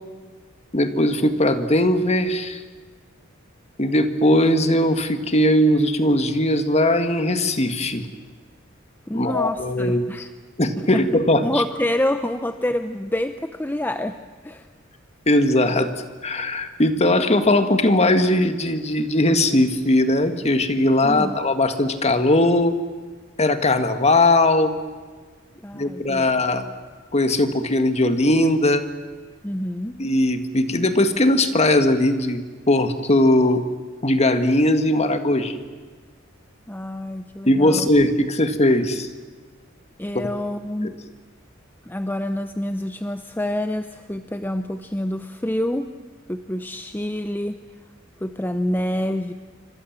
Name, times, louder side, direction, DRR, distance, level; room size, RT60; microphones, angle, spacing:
voice 1, 0.7-2.6 3.8-8.0 9.1-10.0 10.6-11.6 15.3-15.9 16.2-22.8 23.4-24.7 25.7-26.6 27.1-28.9 30.0-33.6 34.0-35.6 37.4-39.1 40.1-40.2, left 1 dB, 30° left, 9 dB, 2.0 m, -19 dB
voice 2, 9.1-10.3 11.4-14.2 14.4-14.7 21.0-21.4 25.6-26.3 29.4-30.0 36.7-37.9 40.0-40.9 41.9-45.9 46.3-47.6 48.2-49.3, left 1 dB, 10° left, 9 dB, 0.8 m, -27 dB
28.0 x 25.0 x 7.5 m, 1.5 s
head